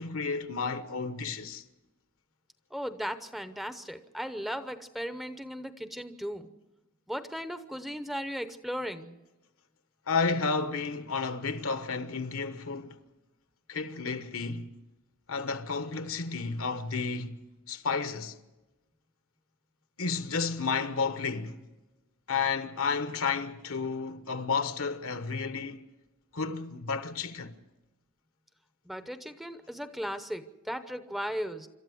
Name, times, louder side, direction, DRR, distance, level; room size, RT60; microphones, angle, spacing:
voice 1, 0.0-1.6 10.1-13.0 13.7-14.7 15.3-18.4 20.0-21.7 22.3-25.8 26.3-27.5, left 4 dB, 70° left, 1.2 m, -32 dB
voice 2, 2.7-6.5 7.1-9.2 28.9-31.7, equal, ahead, 0.8 m, -36 dB
26.5 x 13.0 x 7.8 m
head